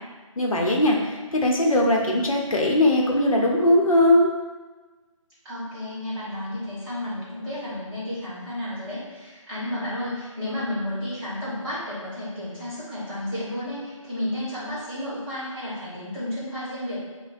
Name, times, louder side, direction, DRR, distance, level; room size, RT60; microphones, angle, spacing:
voice 1, 0.4-4.3, left 1 dB, 85° left, -1 dB, 0.8 m, -20 dB
voice 2, 5.4-17.0, left 1 dB, 10° right, -11 dB, 1.3 m, -32 dB
6.6 x 2.2 x 2.5 m, 1.3 s
figure-of-eight pair, 165°, 17 cm